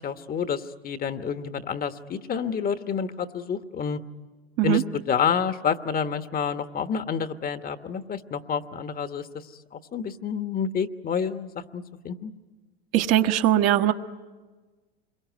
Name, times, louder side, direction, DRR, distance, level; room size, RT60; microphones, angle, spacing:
voice 1, 0.0-4.0 4.6-9.3 9.7-12.3, left 7 dB, 30° left, 10 dB, 1.2 m, -29 dB
voice 2, 12.9-13.9, right 12 dB, 50° right, 6 dB, 1.4 m, -20 dB
27.0 x 22.5 x 9.4 m, 1.3 s
hypercardioid pair, 90°, 31 cm